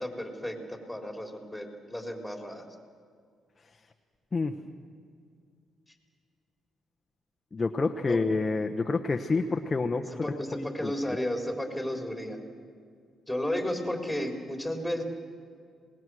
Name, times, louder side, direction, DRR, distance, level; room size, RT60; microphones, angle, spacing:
voice 1, 0.0-2.6 8.1-8.2 9.3-9.5 10.0-12.4 13.3-15.0, left 1 dB, ahead, 2 dB, 3.8 m, -33 dB
voice 2, 7.5-10.9, left 3 dB, 30° left, 4 dB, 1.0 m, -28 dB
27.0 x 19.5 x 6.3 m, 2.2 s
cardioid pair, 90°, 0 cm